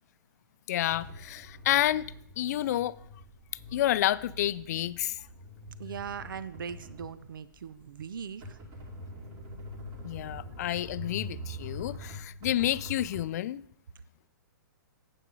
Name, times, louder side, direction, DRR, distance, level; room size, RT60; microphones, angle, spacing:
voice 1, 0.7-2.9 3.7-5.2 10.0-13.6, left 13 dB, 50° left, 0.4 m, -29 dB
sound 1, 0.9-13.3, left 1 dB, 35° right, 2.5 m, -44 dB
voice 2, 5.8-8.6, right 7 dB, 75° right, 0.5 m, -40 dB
8.8 x 7.9 x 3.9 m
hypercardioid pair, 135°, 11 cm